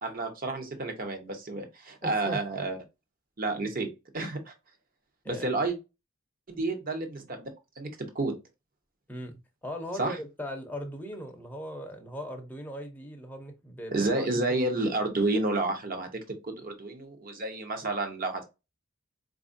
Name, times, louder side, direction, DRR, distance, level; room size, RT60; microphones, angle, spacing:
voice 1, 0.0-2.8 3.4-3.9 4.1-4.5 5.3-5.7 6.5-7.5 7.8-8.4 10.0-10.2 13.9-18.4, right 2 dB, 45° right, 0.8 m, -30 dB
voice 2, 2.0-2.4 5.2-5.6 9.1-14.6, equal, 10° left, 0.6 m, -39 dB
4.2 x 2.5 x 2.5 m
head